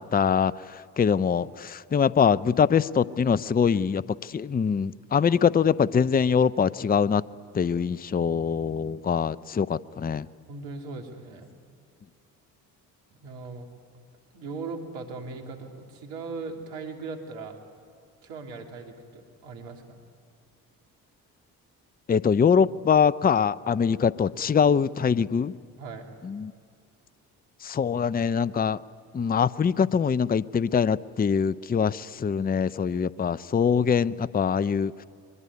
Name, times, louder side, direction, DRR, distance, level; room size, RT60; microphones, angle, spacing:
voice 1, 0.0-7.2 7.5-10.3 22.1-25.5 26.2-26.5 27.6-28.8 29.1-35.0, left 6 dB, 20° left, 18 dB, 0.6 m, -23 dB
voice 2, 10.5-11.5 13.1-13.7 14.3-17.6 18.2-20.0 25.8-26.2, right 4 dB, 80° right, 3 dB, 3.0 m, -39 dB
23.0 x 21.0 x 9.7 m, 2.3 s
hypercardioid pair, 50°, 44 cm